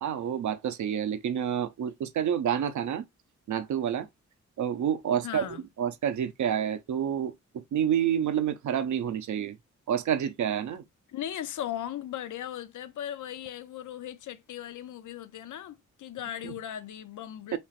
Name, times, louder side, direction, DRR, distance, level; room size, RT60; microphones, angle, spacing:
voice 1, 0.0-3.0 3.5-4.1 4.6-9.6 9.9-10.8 16.4-16.5 17.5-17.6, right 9 dB, 75° right, 0.6 m, -29 dB
voice 2, 5.2-5.6 11.1-17.6, left 11 dB, 90° left, 0.5 m, -38 dB
4.3 x 3.0 x 2.4 m
wide cardioid pair, 130°, 29 cm